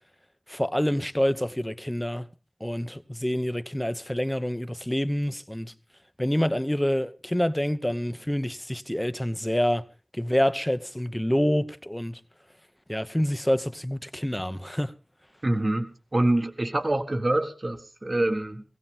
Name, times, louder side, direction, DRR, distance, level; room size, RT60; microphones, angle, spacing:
voice 1, 0.5-2.3 2.6-5.7 6.2-9.9 10.1-12.2 12.9-14.9, equal, 10° left, 0.9 m, -27 dB
voice 2, 15.4-18.6, right 1 dB, 45° right, 1.6 m, -26 dB
18.5 x 16.0 x 3.5 m
wide cardioid pair, 50°, 0 cm